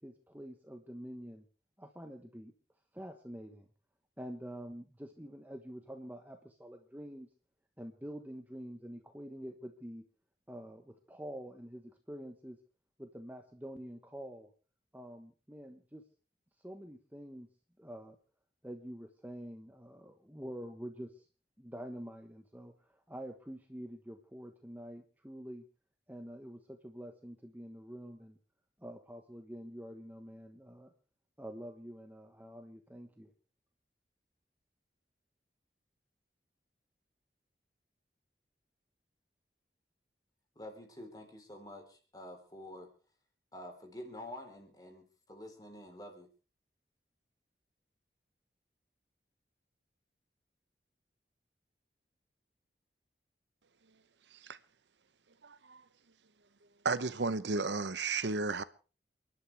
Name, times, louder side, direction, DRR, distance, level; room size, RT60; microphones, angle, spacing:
voice 1, 0.0-1.4 1.8-2.5 2.9-3.7 4.2-7.3 7.8-10.0 10.5-12.6 13.0-14.5 14.9-16.0 16.6-17.5 17.8-18.2 18.6-21.3 21.6-25.6 26.1-28.4 28.8-30.9 31.4-33.3, equal, 10° right, 1.2 m, -47 dB
voice 2, 40.6-42.9 43.5-46.3, left 1 dB, 20° left, 4.0 m, -48 dB
voice 3, 55.4-55.8 56.8-58.6, right 4 dB, 90° right, 0.9 m, -33 dB
29.5 x 12.0 x 3.4 m
head